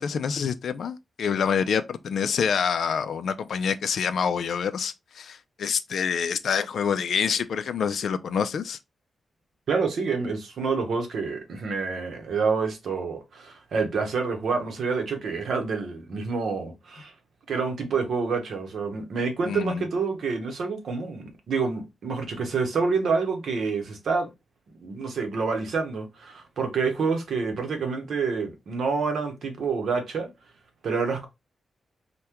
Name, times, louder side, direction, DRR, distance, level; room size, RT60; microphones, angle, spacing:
voice 1, 0.0-8.8 19.4-19.8, left 7 dB, 65° left, 0.3 m, -27 dB
voice 2, 9.7-17.1 17.5-24.3 24.8-30.3 30.8-31.3, right 4 dB, 65° right, 0.8 m, -28 dB
3.5 x 2.1 x 2.8 m
wide cardioid pair, 165°, 0 cm